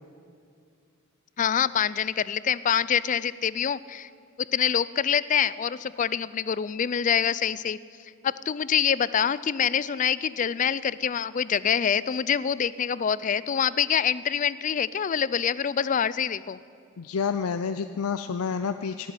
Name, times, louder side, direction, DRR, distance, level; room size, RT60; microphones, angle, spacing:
voice 1, 1.4-4.1 4.4-7.8 8.2-16.6, left 8 dB, 35° left, 18 dB, 0.3 m, -25 dB
voice 2, 17.0-19.1, left 6 dB, 90° left, 9 dB, 0.5 m, -29 dB
18.0 x 8.0 x 9.8 m, 2.4 s
head